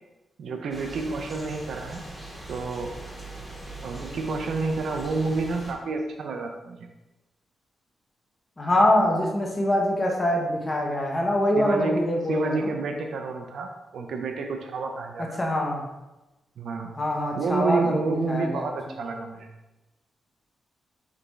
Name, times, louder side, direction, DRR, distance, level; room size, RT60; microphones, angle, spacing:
voice 1, 0.4-2.0 2.5-3.0 3.8-6.9 11.6-15.2 16.6-16.9 17.3-19.5, right 4 dB, 70° right, 4 dB, 0.5 m, -29 dB
sound 1, 0.7-5.7, right 2 dB, ahead, 1.4 m, -41 dB
voice 2, 8.6-12.7 15.4-15.9 17.0-18.0 18.3-18.7, left 1 dB, 25° left, -1 dB, 1.0 m, -24 dB
4.7 x 3.5 x 3.1 m, 1.0 s
cardioid pair, 100°, 0 cm